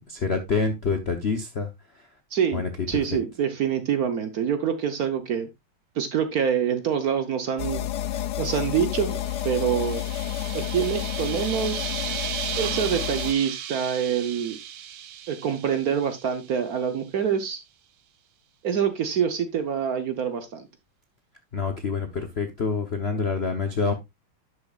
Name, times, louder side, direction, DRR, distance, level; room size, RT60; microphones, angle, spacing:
voice 1, 0.1-2.1 2.5-3.2 21.5-23.9, left 4 dB, 55° left, 0.7 m, -27 dB
voice 2, 2.3-5.5 6.0-7.8 8.1-9.2 9.4-10.0 10.5-11.9 12.6-14.6 15.3-17.6 18.6-20.7, right 8 dB, 55° right, 1.2 m, -26 dB
sound 1, 7.6-13.3, left 12 dB, 70° left, 1.1 m, -30 dB
sound 2, 8.5-16.8, right 10 dB, 85° right, 1.7 m, -36 dB
11.0 x 6.6 x 2.3 m
omnidirectional pair, 2.2 m